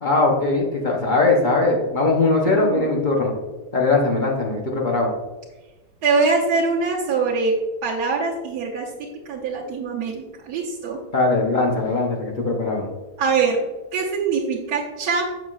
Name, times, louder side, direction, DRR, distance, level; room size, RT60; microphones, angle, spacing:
voice 1, 0.0-3.3 3.7-5.1 11.1-12.9, left 3 dB, 40° left, 0 dB, 0.8 m, -20 dB
voice 2, 2.4-2.9 6.0-7.5 7.8-8.9 9.2-11.0 13.2-13.7 13.9-15.2, right 4 dB, 80° right, -5 dB, 1.3 m, -23 dB
7.1 x 5.8 x 2.4 m, 1.2 s
omnidirectional pair, 1.7 m